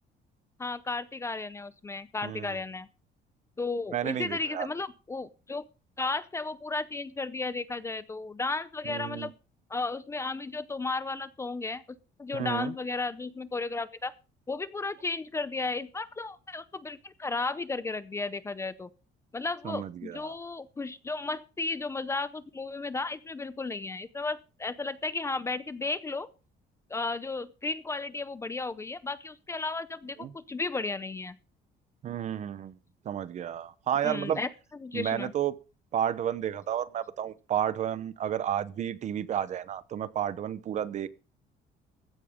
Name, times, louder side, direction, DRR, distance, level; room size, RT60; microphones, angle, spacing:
voice 1, 0.6-2.9 3.6-5.6 6.0-9.3 9.7-11.8 12.2-14.1 14.5-18.9 19.3-26.3 26.9-31.4 34.0-34.5 34.8-35.3, left 3 dB, 15° left, 0.6 m, -34 dB
voice 2, 2.2-2.6 3.9-4.7 8.8-9.3 12.3-12.7 19.6-20.3 30.2-30.3 32.0-32.7 33.0-34.4 34.9-35.5 35.9-41.1, right 10 dB, 40° right, 0.8 m, -31 dB
15.5 x 13.5 x 3.6 m
cardioid pair, 175°, 18 cm